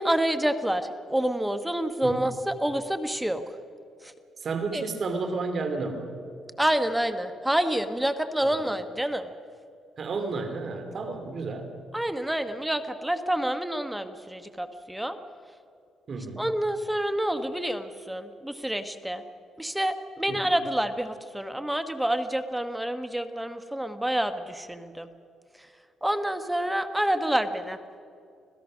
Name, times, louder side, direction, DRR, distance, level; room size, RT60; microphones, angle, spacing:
voice 1, 0.0-3.4 4.0-4.1 4.7-4.8 6.6-9.3 11.9-15.2 16.4-19.2 19.6-25.1 26.0-27.8, right 1 dB, 5° right, 9 dB, 1.2 m, -28 dB
voice 2, 4.4-6.1 8.4-8.6 10.0-11.7 16.1-16.4 20.3-20.5, right 3 dB, 50° right, 6 dB, 2.6 m, -32 dB
26.0 x 17.0 x 6.2 m, 2.4 s
cardioid pair, 90°, 0 cm